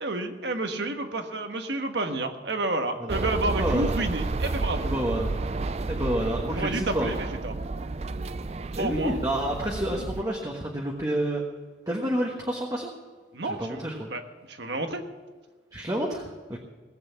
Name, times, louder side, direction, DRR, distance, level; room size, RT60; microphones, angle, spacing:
voice 1, 0.0-4.9 6.5-7.5 8.8-9.2 13.3-13.8 14.1-14.2 14.5-15.0, right 2 dB, 70° right, 6 dB, 1.4 m, -30 dB
sound 1, 3.1-10.2, right 3 dB, 35° right, 0.4 m, -31 dB
voice 2, 3.6-4.0 4.8-5.6 5.9-7.1 8.7-11.4 11.9-12.9 13.4-14.1 15.7-16.6, right 1 dB, 20° right, -1 dB, 1.3 m, -29 dB
18.0 x 8.1 x 7.2 m, 1.4 s
head